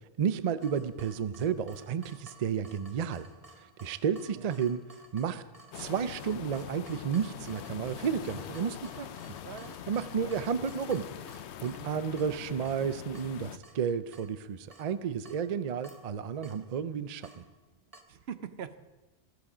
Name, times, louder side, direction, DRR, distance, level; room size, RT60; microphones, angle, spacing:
voice 1, 0.2-3.3 3.6-4.8 5.1-5.4 5.7-9.2 9.9-11.1 11.6-17.4, right 7 dB, 50° right, 14 dB, 0.5 m, -32 dB
Water tap faucet / Drip, 0.6-18.0, right 2 dB, 30° right, 1.2 m, -56 dB
sound 1, 5.7-13.6, left 10 dB, 80° left, 0.9 m, -43 dB
voice 2, 9.4-9.8 10.2-10.3 11.8-12.0 18.1-18.8, right 8 dB, 70° right, 12 dB, 0.9 m, -42 dB
15.0 x 13.0 x 4.9 m, 1.2 s
omnidirectional pair, 1.1 m